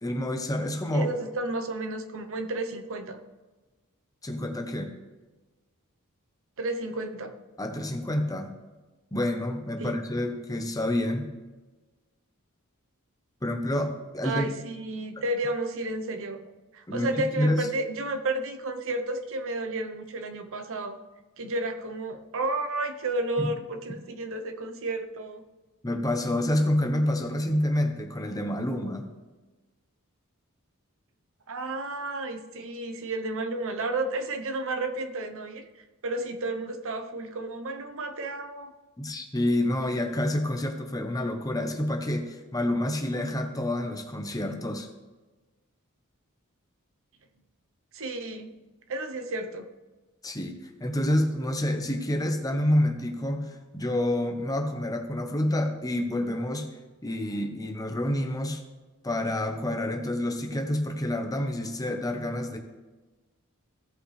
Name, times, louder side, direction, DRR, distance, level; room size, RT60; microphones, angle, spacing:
voice 1, 0.0-1.1 4.2-4.9 7.6-8.5 9.1-11.3 13.4-14.6 16.9-17.1 17.4-17.7 23.4-23.5 25.8-29.1 39.0-44.9 50.2-56.7 57.0-58.6 59.0-62.6, left 1 dB, 15° left, 4 dB, 0.9 m, -28 dB
voice 2, 0.9-3.2 6.6-7.3 9.8-10.0 14.2-16.4 16.7-21.0 21.4-25.4 31.5-35.6 36.0-38.7 47.9-48.6 48.9-49.6, right 2 dB, 65° right, 7 dB, 0.9 m, -32 dB
16.0 x 5.5 x 3.3 m, 1.2 s
head